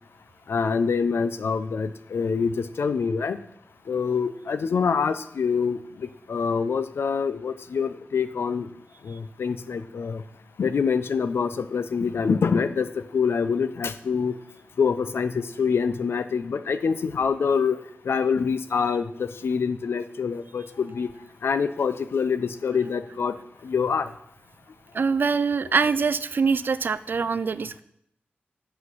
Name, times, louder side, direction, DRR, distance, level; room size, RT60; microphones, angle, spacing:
voice 1, 0.5-3.4 3.9-8.7 9.0-10.2 10.6-14.4 14.8-17.8 18.1-21.1 21.4-23.3 23.6-24.1, left 5 dB, 85° left, 12 dB, 0.5 m, -25 dB
voice 2, 24.9-27.8, right 5 dB, 55° right, 15 dB, 0.3 m, -24 dB
8.5 x 5.8 x 4.7 m, 0.74 s
wide cardioid pair, 110°, 4 cm